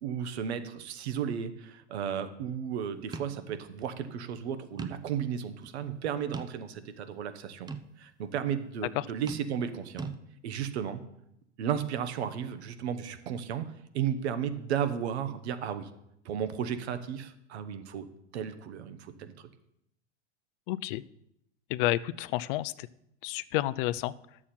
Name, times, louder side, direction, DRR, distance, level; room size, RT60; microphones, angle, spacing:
voice 1, 0.0-10.1 10.4-11.0 11.6-15.9 16.2-18.1 18.3-19.5, right 8 dB, 70° right, 11 dB, 1.1 m, -34 dB
sound 1, 3.1-3.4 3.8-3.9 4.8-5.2 5.6-5.7 6.3-6.9 7.7-7.9 9.3-9.7 10.0-10.1, right 4 dB, 10° right, 0.5 m, -40 dB
voice 2, 20.7-21.0 21.7-22.9 23.2-24.1, left 16 dB, 50° left, 17 dB, 0.5 m, -30 dB
11.0 x 7.4 x 4.3 m, 0.79 s
hypercardioid pair, 95°, 35 cm